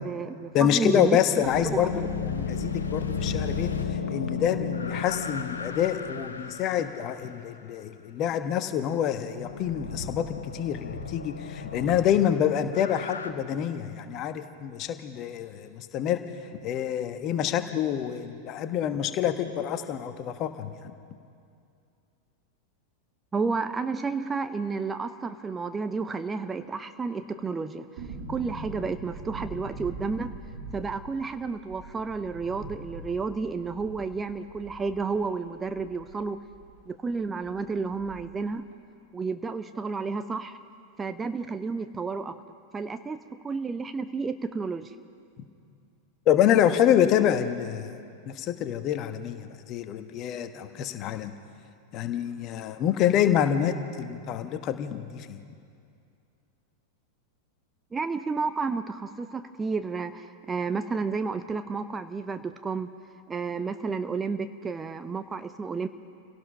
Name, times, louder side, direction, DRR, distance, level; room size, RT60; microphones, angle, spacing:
voice 1, 0.0-1.9 23.3-28.0 28.3-30.3 30.7-36.4 36.9-38.7 39.1-40.6 41.0-42.4 42.7-43.2 43.4-44.9 57.9-62.9 63.3-65.9, right 4 dB, 15° right, 10 dB, 0.7 m, -31 dB
voice 2, 0.5-3.7 4.1-16.2 16.6-20.9 46.3-47.9 48.3-51.3 51.9-55.4, left 10 dB, 35° left, 8 dB, 1.3 m, -26 dB
sound 1, 1.3-7.4 9.3-13.3, left 5 dB, 75° left, 1.3 m, -34 dB
sound 2, 28.0-36.8 37.1-37.2 37.4-38.5 38.7-38.8, right 2 dB, 50° right, 3.4 m, -42 dB
27.5 x 17.5 x 5.6 m, 2.4 s
figure-of-eight pair, 90°, 0 cm